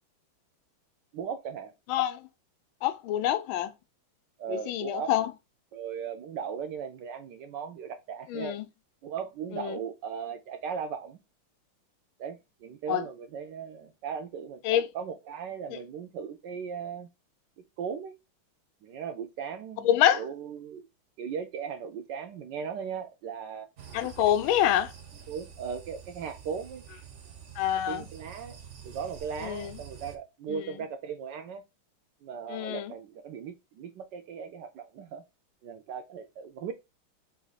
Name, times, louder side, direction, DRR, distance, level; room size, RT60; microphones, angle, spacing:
voice 1, 1.1-1.7 4.4-5.1 5.7-8.6 9.0-11.2 12.2-14.6 14.9-17.1 17.8-18.1 18.8-20.8 21.2-23.7 24.0-24.3 25.3-26.8 27.9-28.6 28.8-31.6 32.2-35.2 35.6-36.7, right 7 dB, 75° right, 1.1 m, -37 dB
voice 2, 1.9-2.2 2.8-3.7 4.5-5.3 8.3-8.6 9.5-9.8 12.9-13.0 14.6-14.9 19.8-20.2 23.9-24.9 27.6-28.1 29.4-29.8 30.5-30.6 32.5-32.9, left 11 dB, 80° left, 1.3 m, -26 dB
sound 1, 23.8-30.2, right 8 dB, 55° right, 0.8 m, -47 dB
4.1 x 2.7 x 3.9 m
omnidirectional pair, 2.2 m